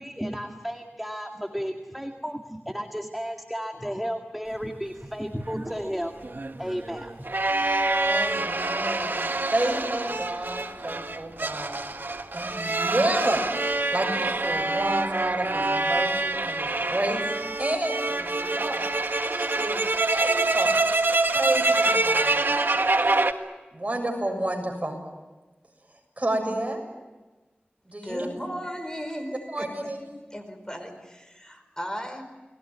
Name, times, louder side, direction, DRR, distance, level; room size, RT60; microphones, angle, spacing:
voice 1, 0.0-6.1 6.6-7.1, equal, ahead, 3 dB, 2.0 m, -33 dB
sound 1, 5.6-23.3, right 2 dB, 70° right, 1.6 m, -26 dB
voice 2, 8.0-11.8 12.3-13.5 13.9-17.2 17.6-18.9 19.2-19.8 20.1-20.8 21.3-22.5 23.7-25.0 26.2-26.8 27.9-28.3 29.5-30.1, right 1 dB, 35° right, 3 dB, 7.2 m, -30 dB
voice 3, 28.0-30.0 30.3-32.2, equal, 20° left, 7 dB, 4.6 m, -36 dB
30.0 x 21.0 x 9.5 m, 1.2 s
wide cardioid pair, 60°, 4 cm